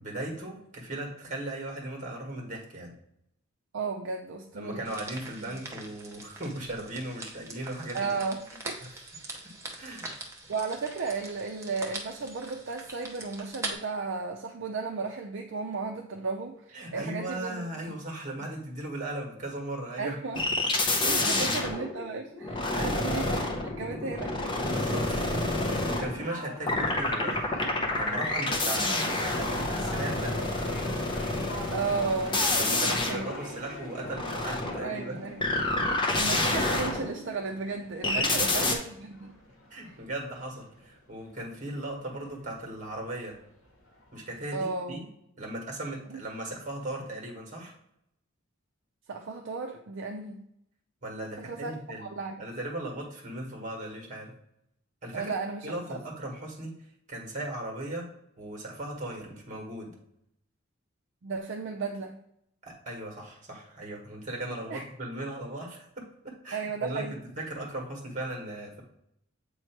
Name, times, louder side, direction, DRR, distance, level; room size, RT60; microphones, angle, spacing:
voice 1, 0.0-2.9 4.5-8.1 8.8-8.9 9.8-10.1 16.7-20.2 20.9-21.7 22.7-23.1 24.6-27.5 28.0-30.4 32.5-35.2 38.1-38.5 39.7-43.4 44.1-45.1 45.4-47.7 51.0-52.1 52.4-54.3 55.0-55.3 55.6-56.8 57.1-58.1 58.4-59.9 62.6-68.8, right 1 dB, 35° right, 0 dB, 1.6 m, -37 dB
voice 2, 3.7-4.9 5.4-5.5 7.9-8.4 8.6-8.8 10.5-17.7 18.4-18.5 20.0-20.4 21.0-24.4 31.7-32.4 33.1-33.4 34.8-35.5 36.1-39.3 39.8-40.0 44.5-45.1 46.1-46.2 49.1-50.4 51.4-52.4 55.1-56.0 61.2-62.2 64.7-64.8 66.5-67.2, right 4 dB, 55° right, 2 dB, 0.5 m, -34 dB
sound 1, 4.8-13.7, right 2 dB, 15° right, 0.7 m, -42 dB
sound 2, 20.3-26.4 26.7-37.4 38.0-38.7, left 2 dB, 20° left, 0.7 m, -29 dB
sound 3, 25.5-44.4, left 1 dB, 70° left, 1.8 m, -45 dB
7.9 x 3.0 x 4.5 m, 0.77 s
head